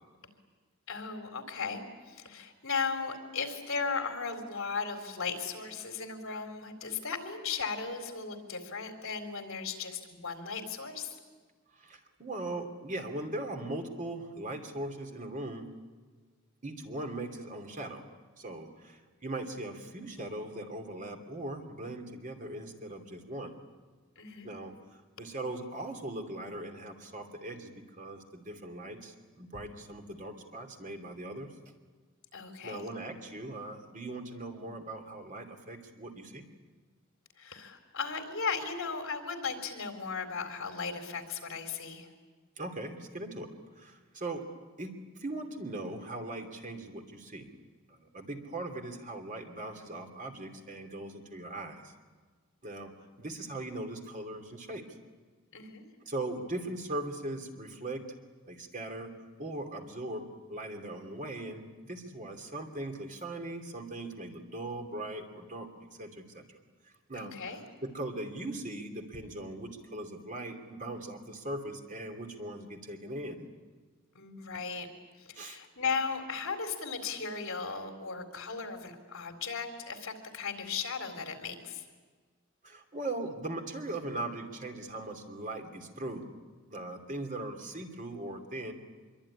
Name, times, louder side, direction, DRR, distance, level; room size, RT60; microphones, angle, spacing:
voice 1, 0.9-11.2 24.2-24.5 32.3-32.8 37.4-42.1 55.5-55.9 67.1-67.6 74.1-74.9 75.2-81.8, left 5 dB, 65° left, 6 dB, 3.9 m, -36 dB
voice 2, 11.7-15.7 16.6-18.0 18.4-23.6 24.4-31.5 32.6-36.5 42.6-43.5 43.8-44.4 44.8-47.5 47.9-51.9 52.6-52.9 53.2-54.8 56.0-58.0 58.5-59.1 59.4-65.7 66.0-66.6 67.1-67.5 67.8-73.5 75.3-75.6 82.6-86.3 86.7-88.7, right 2 dB, 40° right, 4 dB, 2.8 m, -40 dB
25.0 x 23.5 x 9.9 m, 1.5 s
head